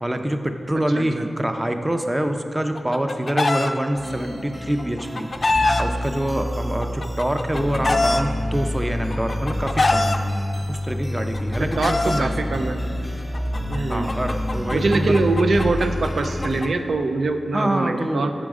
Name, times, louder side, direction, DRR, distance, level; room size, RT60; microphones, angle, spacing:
voice 1, 0.0-5.3 5.8-10.2 10.7-12.3 13.9-15.2 17.5-18.3, right 1 dB, 20° right, 6 dB, 0.5 m, -25 dB
voice 2, 0.9-1.2 11.6-12.8 13.7-14.1 14.7-18.3, right 3 dB, 75° right, 6 dB, 0.4 m, -23 dB
Chicken rooster, 2.6-3.7 4.8-5.8 6.8-8.2 9.1-10.2 11.2-12.2 13.3-16.7, left 2 dB, 50° left, 0.4 m, -23 dB
sound 1, 3.9-16.6, left 1 dB, ahead, 0.9 m, -28 dB
6.3 x 5.0 x 4.8 m, 2.5 s
cardioid pair, 50°, 0 cm